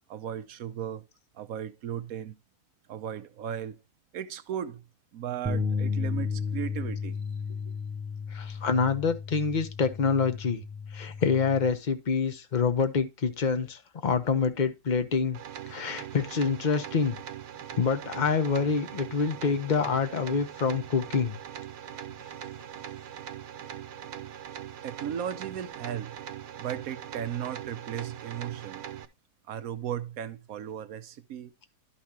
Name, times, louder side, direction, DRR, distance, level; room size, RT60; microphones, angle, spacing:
voice 1, 0.1-1.1 1.3-2.3 2.9-3.8 4.1-4.8 5.1-7.2 7.7-7.8 24.8-26.2 26.6-28.8 29.5-31.5, right 9 dB, 70° right, 1.1 m, -36 dB
sound 1, 5.5-11.7, left 5 dB, 15° right, 0.6 m, -33 dB
voice 2, 8.3-10.6 10.9-15.4 15.7-17.2 17.8-21.3, left 5 dB, 35° left, 1.0 m, -26 dB
sound 2, 15.3-29.1, right 10 dB, 90° right, 1.3 m, -41 dB
11.5 x 5.7 x 2.9 m
omnidirectional pair, 1.6 m